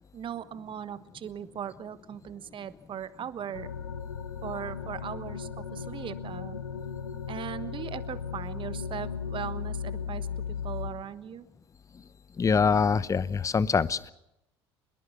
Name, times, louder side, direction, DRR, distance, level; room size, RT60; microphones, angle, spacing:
voice 1, 0.1-3.7 4.4-6.6 7.3-11.5, right 9 dB, 40° right, 14 dB, 1.3 m, -39 dB
sound 1, 3.5-10.9, left 7 dB, 85° left, 1.2 m, -36 dB
voice 2, 12.4-14.1, left 5 dB, 25° left, 18 dB, 0.9 m, -24 dB
24.0 x 21.5 x 5.8 m, 0.84 s
figure-of-eight pair, 65°, 13 cm